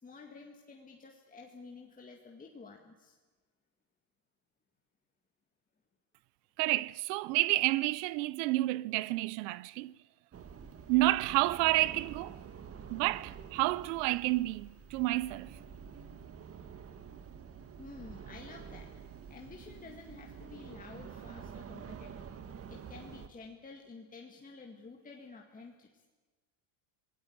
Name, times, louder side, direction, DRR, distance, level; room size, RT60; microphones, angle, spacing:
voice 1, 0.0-3.2 17.8-18.9 19.3-22.3 22.7-25.9, left 4 dB, 15° left, 2.0 m, -51 dB
voice 2, 6.6-10.0 10.9-12.4 12.9-15.6, right 19 dB, 75° right, 0.7 m, -30 dB
sound 1, 10.3-23.3, right 7 dB, 30° right, 1.5 m, -48 dB
26.0 x 18.5 x 8.7 m
supercardioid pair, 125°, 48 cm